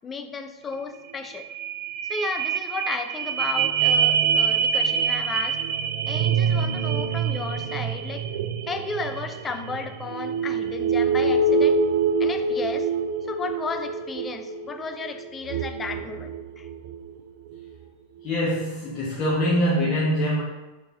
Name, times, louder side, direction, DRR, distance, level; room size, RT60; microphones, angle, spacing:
voice 1, 0.0-1.5 2.1-5.6 6.1-8.2 8.7-11.8 12.2-12.9 13.3-16.7, left 4 dB, 20° left, 7 dB, 0.4 m, -34 dB
sound 1, 0.7-0.8 1.1-17.0 17.5-17.6, right 5 dB, 55° right, 0.3 m, -25 dB
voice 2, 18.2-20.4, equal, 35° left, -6 dB, 0.8 m, -23 dB
5.6 x 3.5 x 2.4 m, 1.1 s
figure-of-eight pair, 90°, 0 cm